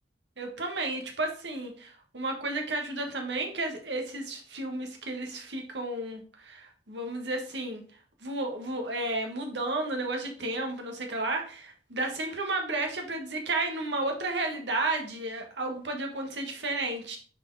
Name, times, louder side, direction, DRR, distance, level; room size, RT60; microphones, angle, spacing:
voice 1, 0.4-7.8 8.2-17.2, right 2 dB, 85° right, 3 dB, 1.5 m, -32 dB
6.2 x 4.7 x 3.9 m, 0.43 s
head